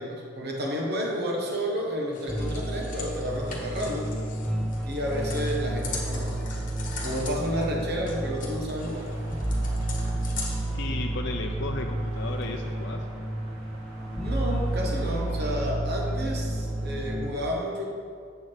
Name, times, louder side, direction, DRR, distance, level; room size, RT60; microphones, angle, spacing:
voice 1, 0.0-4.1 4.8-6.5 7.0-9.2 14.2-17.9, equal, 50° right, -1 dB, 1.3 m, -31 dB
sound 1, 2.1-10.7, left 4 dB, 40° left, 1.3 m, -41 dB
sound 2, 2.3-17.3, right 1 dB, ahead, 0.6 m, -31 dB
sound 3, 8.8-15.6, right 1 dB, 80° right, 1.5 m, -50 dB
voice 2, 10.7-13.1, left 3 dB, 55° left, 3 dB, 0.5 m, -34 dB
8.1 x 4.8 x 6.5 m, 2.2 s
head